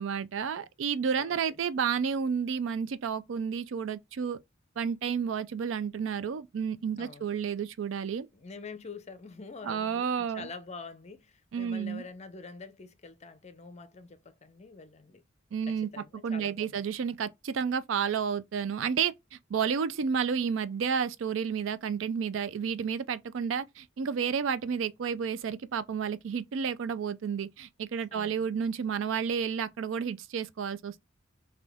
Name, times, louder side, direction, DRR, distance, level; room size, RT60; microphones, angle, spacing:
voice 1, 0.0-4.4 4.8-8.3 9.6-10.5 11.5-12.0 15.5-15.9 16.2-31.1, right 6 dB, 70° right, 0.4 m, -31 dB
voice 2, 1.2-1.6 7.0-7.3 8.3-15.2 15.7-16.8 28.1-28.5, left 4 dB, 35° left, 0.6 m, -46 dB
4.1 x 2.8 x 3.4 m
head